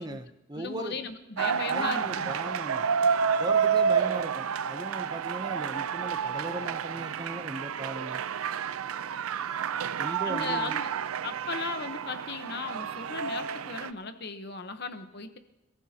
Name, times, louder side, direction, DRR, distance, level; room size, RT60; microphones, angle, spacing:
voice 1, 0.0-1.0 1.7-2.9 3.4-8.2 10.0-10.8, right 1 dB, 20° right, 8 dB, 0.7 m, -38 dB
voice 2, 0.5-2.3 10.2-10.9 11.2-15.4, left 4 dB, 50° left, 9 dB, 1.0 m, -37 dB
sound 1, 1.4-13.9, right 7 dB, 85° right, 0.5 m, -29 dB
28.0 x 14.5 x 2.9 m, 0.96 s
head